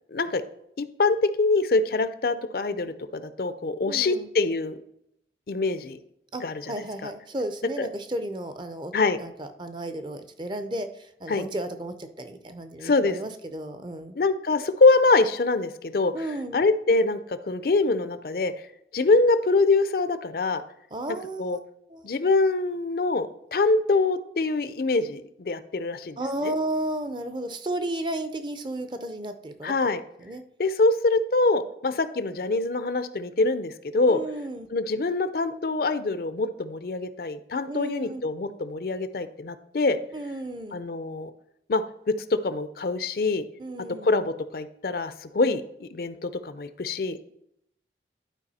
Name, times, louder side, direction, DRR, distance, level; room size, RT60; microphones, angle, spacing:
voice 1, 0.1-0.4 0.8-4.8 5.5-6.0 6.4-6.5 7.0-7.1 7.8-7.9 8.9-9.2 11.3-11.4 12.8-13.2 14.2-16.1 16.5-18.5 18.9-20.6 21.4-21.6 22.0-26.2 26.4-26.5 29.6-30.0 30.6-34.2 34.7-40.0 40.7-41.3 41.7-43.4 44.0-47.2, left 3 dB, 55° left, 12 dB, 0.5 m, -24 dB
voice 2, 3.9-4.3 6.3-8.9 9.2-14.2 16.1-16.6 20.9-21.6 21.9-22.1 26.2-29.7 30.2-30.4 34.1-34.7 37.7-38.2 40.1-40.8 43.6-44.1, right 1 dB, 25° right, 9 dB, 0.6 m, -33 dB
11.5 x 4.7 x 4.2 m, 0.76 s
head